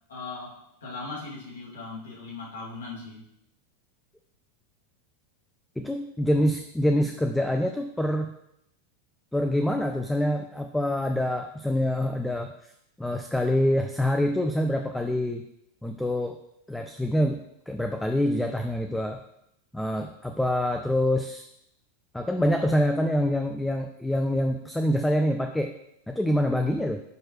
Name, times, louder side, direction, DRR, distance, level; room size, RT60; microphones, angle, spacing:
voice 1, 0.1-3.2, left 3 dB, 75° left, -5 dB, 2.5 m, -39 dB
voice 2, 5.8-8.3 9.3-12.7 13.0-15.4 15.8-16.4 16.7-17.4 17.7-19.2 19.7-21.4 22.1-25.7 26.1-27.0, left 1 dB, 5° left, 5 dB, 0.5 m, -26 dB
9.5 x 4.6 x 3.1 m, 0.78 s
hypercardioid pair, 90°, 0 cm